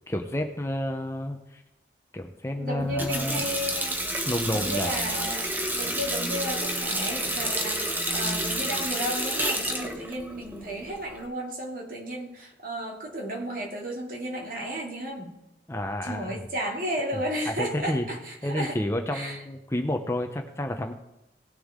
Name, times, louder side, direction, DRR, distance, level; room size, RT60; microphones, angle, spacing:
voice 1, 0.1-1.6 2.1-3.5 4.2-4.9 15.7-16.4 17.1-18.1 18.4-20.9, left 1 dB, 15° left, 5 dB, 0.7 m, -30 dB
voice 2, 2.5-15.4 16.0-18.8 19.1-19.4, equal, 50° right, -1 dB, 2.7 m, -33 dB
Water tap faucet, 2.8-11.2, right 1 dB, 10° right, 1.0 m, -30 dB
18.5 x 6.8 x 3.7 m, 0.93 s
head